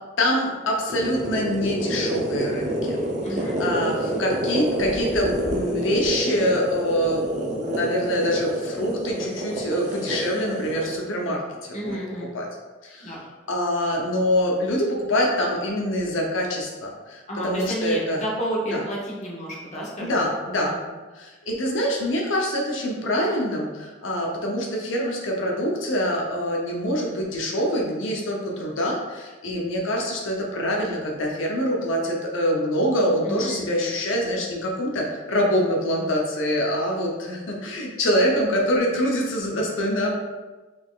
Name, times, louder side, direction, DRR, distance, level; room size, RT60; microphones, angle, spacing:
voice 1, 0.2-3.0 3.3-12.0 12.3-12.5 12.8-13.2 13.5-18.2 18.7-18.8 20.0-20.7 21.2-40.1, equal, 85° left, -1 dB, 0.7 m, -25 dB
sound 1, 0.9-11.0, right 1 dB, 35° right, 0.6 m, -28 dB
voice 2, 3.2-3.6 11.7-12.3 13.0-13.2 17.3-20.2 33.2-33.7, equal, 35° left, -4 dB, 0.9 m, -31 dB
4.2 x 3.6 x 2.4 m, 1.3 s
head